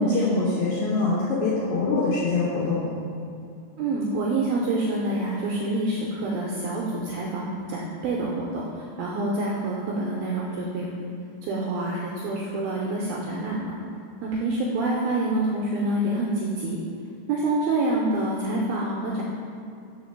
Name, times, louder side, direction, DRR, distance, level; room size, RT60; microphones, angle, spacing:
voice 1, 0.0-2.9, left 3 dB, 60° left, -10 dB, 2.2 m, -24 dB
voice 2, 3.8-10.9 11.4-13.8 14.2-16.8 17.3-19.2, right 2 dB, 90° right, -3 dB, 2.2 m, -27 dB
5.2 x 5.0 x 6.3 m, 2.5 s
omnidirectional pair, 5.0 m